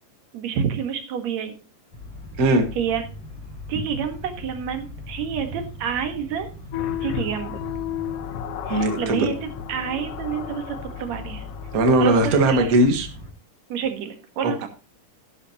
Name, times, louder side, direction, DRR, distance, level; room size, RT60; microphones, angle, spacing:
voice 1, 0.3-1.6 2.4-3.0 3.7-6.5 7.0-7.6 8.7-11.5 12.0-12.7 13.7-14.7, right 7 dB, 65° right, 5 dB, 2.7 m, -28 dB
sound 1, 1.9-13.3, left 2 dB, 50° left, 6.6 m, -39 dB
sound 2, 6.7-12.7, left 11 dB, 65° left, 1.6 m, -33 dB
voice 2, 8.7-9.3 11.7-13.1 14.4-14.7, right 1 dB, 35° right, 5 dB, 1.6 m, -19 dB
12.5 x 11.5 x 3.0 m, 0.32 s
omnidirectional pair, 3.6 m